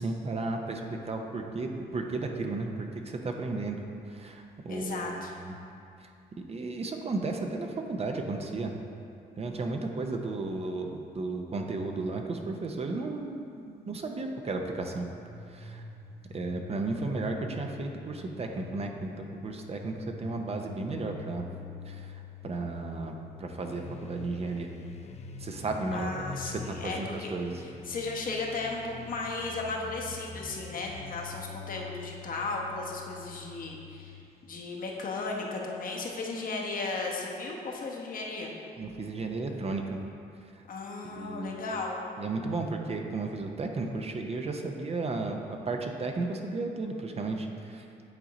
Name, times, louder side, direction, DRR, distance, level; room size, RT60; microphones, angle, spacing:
voice 1, 0.0-2.7 3.0-5.1 5.4-5.5 6.0-6.1 6.5-8.8 9.4-15.1 15.5-15.8 16.3-21.4 21.9-24.7 25.4-26.1 26.4-27.6 38.8-40.0 41.0-41.6 42.2-45.4 45.7-47.9, right 3 dB, 35° right, 3 dB, 0.7 m, -34 dB
voice 2, 4.7-5.3 25.9-27.3 27.9-38.5 40.7-42.0, left 3 dB, 55° left, -1 dB, 1.1 m, -35 dB
sound 1, 15.0-34.2, left 6 dB, 80° left, 1.1 m, -47 dB
sound 2, 23.6-31.4, left 5 dB, 40° left, 0.5 m, -47 dB
8.9 x 3.8 x 4.1 m, 2.5 s
cardioid pair, 80°, 17 cm